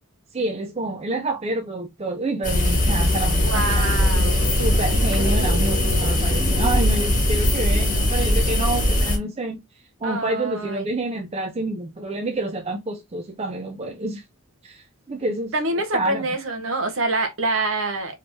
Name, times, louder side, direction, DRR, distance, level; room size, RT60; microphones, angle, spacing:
voice 1, 0.3-9.6 10.0-14.2 14.6-15.5 15.9-16.3, right 2 dB, 30° right, 0.4 m, -28 dB
sound 1, 2.4-9.2, left 1 dB, 35° left, 1.6 m, -20 dB
voice 2, 3.4-4.4 4.9-6.0 10.0-10.9 15.5-18.2, right 2 dB, 65° right, 1.0 m, -27 dB
3.5 x 3.2 x 2.6 m
head